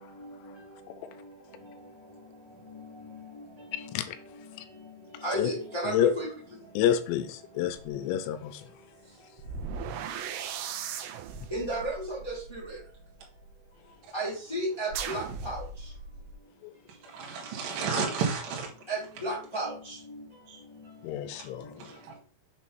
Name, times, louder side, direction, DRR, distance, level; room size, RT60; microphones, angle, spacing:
voice 1, 0.1-0.5 1.2-1.3 1.6-1.7 2.7-3.9 4.3-4.4 5.2-6.3 11.5-12.8 14.1-15.6 18.9-20.2, right 1 dB, 20° left, 0.7 m, -34 dB
voice 2, 3.7-4.7 5.1-5.5 5.8-6.1 6.8-8.8 16.6-16.7 21.0-21.9, left 10 dB, 85° left, 2.7 m, -30 dB
sound 1, 7.7-7.9 9.4-13.5 14.9-16.3, right 6 dB, 80° right, 2.2 m, -38 dB
voice 3, 17.0-18.7 20.5-20.6 21.8-22.1, right 5 dB, 65° right, 2.6 m, -32 dB
6.8 x 3.0 x 5.5 m
omnidirectional pair, 5.0 m